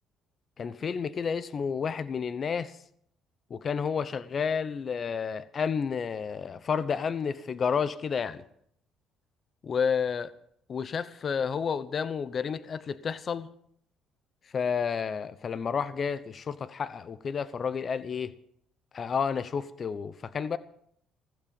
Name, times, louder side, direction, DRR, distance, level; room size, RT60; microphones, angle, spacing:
voice 1, 0.6-2.8 3.5-8.4 9.6-10.3 10.7-13.5 14.5-18.3 18.9-20.6, left 6 dB, 45° left, 0.8 m, -30 dB
15.5 x 15.0 x 5.4 m
supercardioid pair, 75°, 0 cm